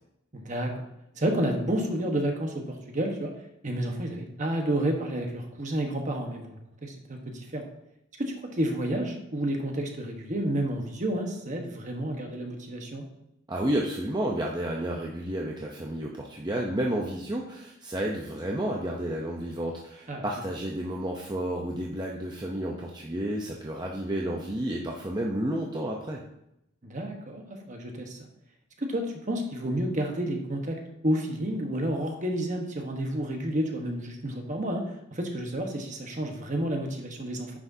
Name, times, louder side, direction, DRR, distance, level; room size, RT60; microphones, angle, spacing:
voice 1, 0.3-0.7 1.1-3.3 3.6-7.6 8.2-13.1 20.1-20.2 26.8-28.2 28.8-34.8 35.1-37.5, right 1 dB, 35° right, 3 dB, 1.2 m, -30 dB
voice 2, 13.5-26.2, right 1 dB, 20° right, -1 dB, 0.7 m, -31 dB
9.7 x 6.0 x 2.7 m, 0.81 s
head